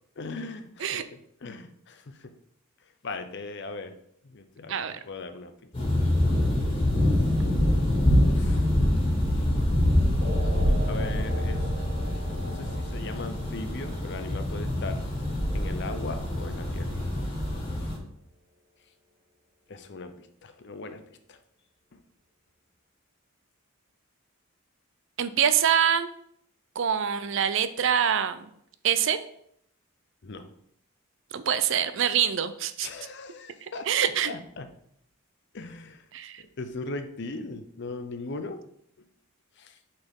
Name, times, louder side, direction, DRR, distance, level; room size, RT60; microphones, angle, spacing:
voice 1, 0.2-2.3 3.0-3.9 4.2-5.5 8.4-8.7 10.9-11.6 12.4-15.0 15.5-16.9 19.7-21.4 30.2-30.5 32.8-33.9 34.2-34.7 35.5-36.0 36.4-38.6 39.6-39.7, left 3 dB, 55° left, 8 dB, 0.6 m, -39 dB
voice 2, 4.7-5.0 25.2-26.1 26.8-28.5 28.8-29.2 31.3-32.9 33.6-34.3 36.1-36.4, right 8 dB, 60° right, 12 dB, 0.5 m, -25 dB
sound 1, 5.7-18.0, left 1 dB, 25° left, 2.0 m, -25 dB
sound 2, 10.2-17.2, equal, 40° right, 1.5 m, -42 dB
7.8 x 4.2 x 3.7 m, 0.69 s
head